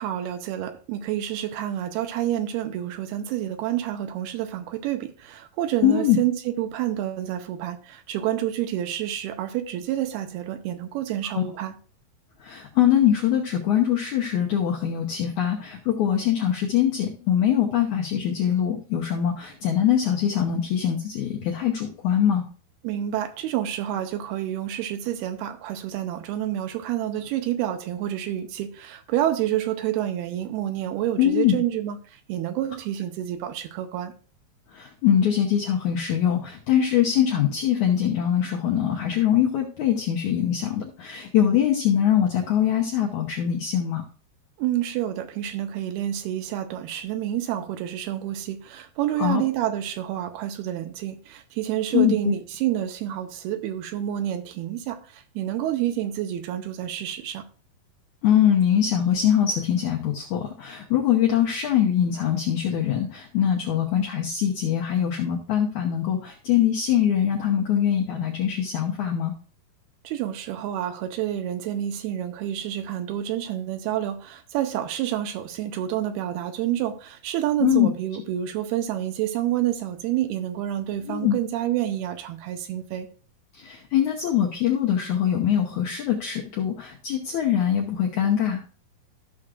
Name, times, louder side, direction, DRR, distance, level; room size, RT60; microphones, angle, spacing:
voice 1, 0.0-11.8 22.8-34.1 44.6-57.5 70.0-83.1, right 12 dB, 80° right, 2.7 m, -28 dB
voice 2, 5.8-6.2 11.3-11.4 12.4-22.4 31.2-31.5 34.7-44.0 49.2-49.4 51.9-52.4 58.2-69.3 77.6-77.9 81.1-81.4 83.5-88.6, left 10 dB, 70° left, 1.9 m, -23 dB
14.5 x 6.3 x 2.5 m
omnidirectional pair, 4.6 m